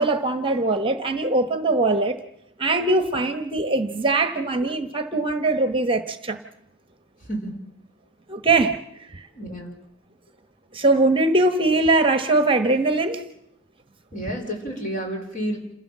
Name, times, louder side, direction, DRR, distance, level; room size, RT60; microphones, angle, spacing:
voice 1, 0.0-2.2 2.6-6.4 8.3-8.8 9.1-9.3 10.7-13.2, right 2 dB, 25° right, 9 dB, 1.2 m, -21 dB
voice 2, 7.2-7.6 9.4-9.8 14.1-15.6, right 1 dB, 40° left, 2 dB, 5.1 m, -30 dB
28.0 x 16.0 x 7.5 m, 0.83 s
head